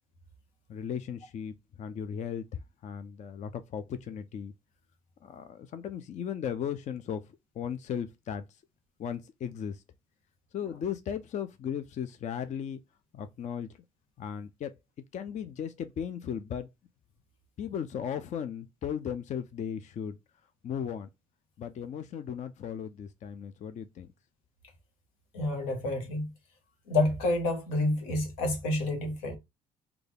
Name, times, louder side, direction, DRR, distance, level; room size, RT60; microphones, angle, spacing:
voice 1, 0.7-4.5 5.2-7.2 7.6-8.4 9.0-9.8 10.5-12.8 13.1-13.7 14.2-14.8 15.1-16.7 17.6-20.2 20.6-21.1 21.6-24.1, left 8 dB, 45° left, 0.4 m, -36 dB
voice 2, 25.3-26.3 26.9-29.4, left 2 dB, 85° left, 1.0 m, -29 dB
3.2 x 2.3 x 3.8 m
hypercardioid pair, 60°, 17 cm